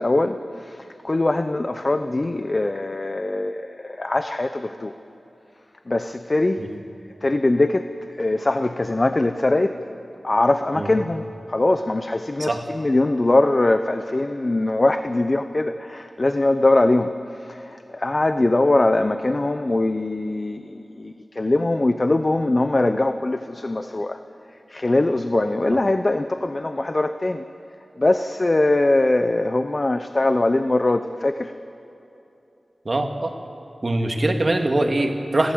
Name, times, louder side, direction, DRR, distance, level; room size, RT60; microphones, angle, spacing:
voice 1, 0.0-4.9 5.9-6.6 7.2-7.9 8.2-9.8 10.2-24.2 24.7-27.4 28.0-31.5, left 2 dB, 40° left, 9 dB, 0.7 m, -22 dB
voice 2, 32.9-33.3 33.8-35.5, right 2 dB, 45° right, 4 dB, 2.0 m, -22 dB
30.0 x 13.0 x 7.9 m, 2.9 s
wide cardioid pair, 70°, 0 cm